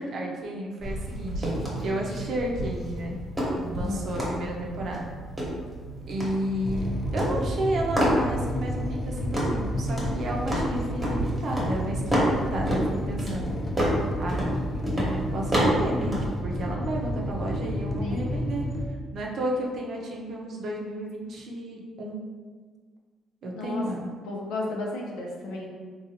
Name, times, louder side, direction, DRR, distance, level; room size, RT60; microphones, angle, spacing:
voice 1, 0.0-1.5 1.8-3.2 3.5-5.1 6.1-6.9 7.1-13.5 14.2-14.4 15.1-18.7 19.1-22.2 23.4-24.1, right 1 dB, 55° right, -1 dB, 0.6 m, -32 dB
sound 1, 0.8-16.4, equal, 15° right, 0.9 m, -30 dB
voice 2, 3.8-4.1 18.0-18.3 23.6-23.8 24.2-25.7, left 2 dB, 80° left, -1 dB, 0.7 m, -33 dB
sound 2, 6.6-18.9, equal, 20° left, 0.4 m, -31 dB
3.8 x 2.4 x 2.7 m, 1.5 s
cardioid pair, 130°, 0 cm